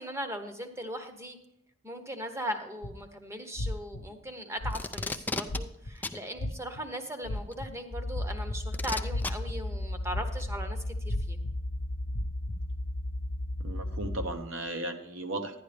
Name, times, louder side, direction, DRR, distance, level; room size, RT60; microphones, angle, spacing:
voice 1, 0.0-1.4 1.8-11.4, equal, 15° right, 6 dB, 0.9 m, -38 dB
sound 1, 2.8-3.0 3.6-4.0 4.6-5.1 5.5-5.9 6.4-6.8 7.2-7.7 8.1-8.7 9.1-9.5 10.1-10.5 11.1-11.5 12.1-12.6, left 1 dB, 80° left, 0.7 m, -34 dB
Packing tape duct tape, 4.7-5.6 6.0-6.2 7.5-7.6 8.7-9.3 10.4-10.5, left 3 dB, 10° left, 0.3 m, -33 dB
sound 2, 7.9-14.3, left 1 dB, 25° left, 0.8 m, -35 dB
voice 2, 13.6-15.6, right 1 dB, 65° right, 6 dB, 1.0 m, -36 dB
11.0 x 10.0 x 3.4 m, 0.83 s
head